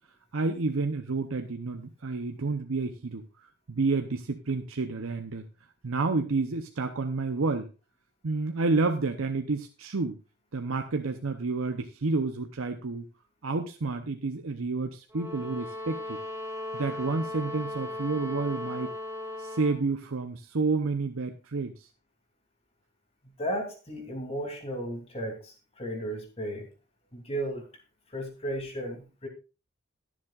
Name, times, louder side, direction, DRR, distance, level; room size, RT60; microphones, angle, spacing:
voice 1, 0.3-3.3 3.7-5.5 5.8-7.7 8.2-10.2 10.5-13.0 13.4-16.2 16.7-18.9 19.4-21.9, right 3 dB, 80° right, 6 dB, 0.8 m, -30 dB
sound 1, 15.1-19.8, left 1 dB, 15° right, 2.3 m, -37 dB
voice 2, 23.4-26.7 27.1-27.7 28.1-29.3, right 1 dB, 30° left, 2 dB, 3.0 m, -34 dB
22.0 x 7.3 x 2.4 m, 0.31 s
head